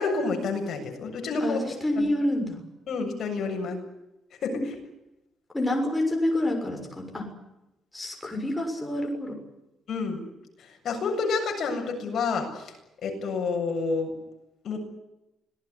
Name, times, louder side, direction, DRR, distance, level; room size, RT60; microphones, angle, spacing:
voice 1, 0.0-1.6 2.0-2.1 2.9-3.8 4.4-4.5 9.9-10.3 10.8-12.7 13.0-14.1 14.6-14.8, left 4 dB, 50° left, 3 dB, 7.5 m, -28 dB
voice 2, 1.4-2.6 5.5-7.3 7.9-9.3, left 1 dB, 10° left, 2 dB, 6.6 m, -27 dB
26.0 x 18.0 x 9.9 m, 0.92 s
cardioid pair, 170°, 0 cm